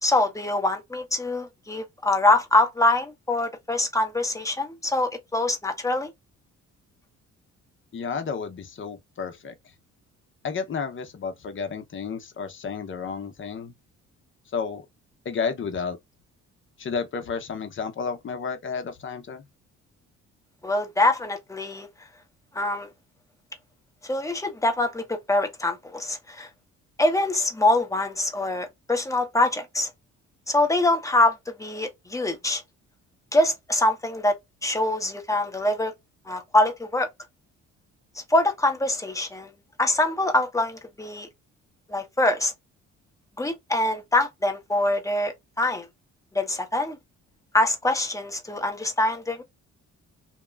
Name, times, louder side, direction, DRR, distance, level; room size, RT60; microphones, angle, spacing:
voice 1, 0.0-6.1 20.6-21.9 22.5-22.9 24.0-26.5 27.0-29.9 30.5-32.6 33.3-34.3 34.6-35.9 36.3-37.1 38.3-39.5 39.8-41.3 41.9-42.5 43.4-45.9 46.3-47.0 47.5-49.4, left 2 dB, 10° left, 0.9 m, -24 dB
voice 2, 7.9-9.5 10.4-13.7 14.5-14.8 15.2-16.0 16.8-19.4, left 5 dB, 40° left, 0.8 m, -31 dB
2.8 x 2.1 x 2.3 m
cardioid pair, 90°, 30 cm